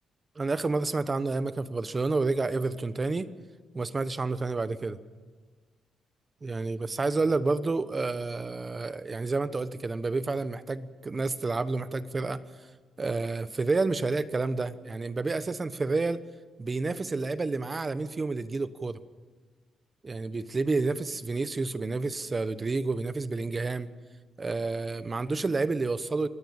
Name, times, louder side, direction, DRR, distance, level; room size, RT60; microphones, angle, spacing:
voice 1, 0.4-3.3 3.7-5.0 6.4-12.4 13.0-16.2 16.6-19.0 20.0-23.9 24.4-26.3, right 3 dB, 30° right, 13 dB, 1.1 m, -29 dB
24.0 x 17.5 x 7.2 m, 1.4 s
cardioid pair, 105°, 0 cm